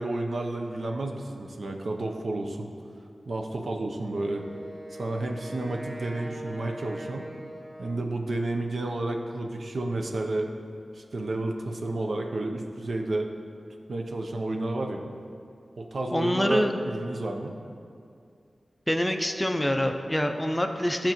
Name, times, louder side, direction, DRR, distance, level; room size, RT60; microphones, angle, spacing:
voice 1, 0.0-2.7 3.3-4.4 5.0-7.2 7.8-10.5 11.0-13.3 13.9-15.0 15.8-17.5, right 2 dB, 70° right, 3 dB, 0.6 m, -31 dB
Wind instrument woodwind instrument, 4.1-8.3, equal, 35° right, 1.1 m, -41 dB
voice 2, 16.1-16.7 18.9-21.1, equal, 10° left, 5 dB, 0.4 m, -25 dB
11.5 x 4.3 x 3.0 m, 2.3 s
wide cardioid pair, 65°, 0 cm